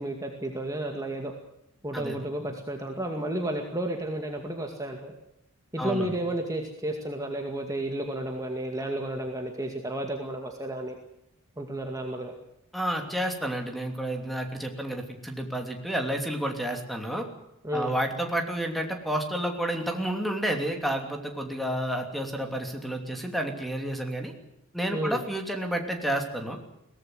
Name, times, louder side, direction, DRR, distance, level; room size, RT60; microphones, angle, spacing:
voice 1, 0.0-1.3 1.8-5.1 5.7-11.0 11.6-12.3 17.6-18.0 24.9-25.2, right 1 dB, 15° right, 2 dB, 2.2 m, -32 dB
voice 2, 5.8-6.1 12.7-17.3 17.7-24.3 24.7-26.6, right 1 dB, ahead, 4 dB, 2.9 m, -30 dB
23.0 x 18.0 x 8.0 m, 0.82 s
head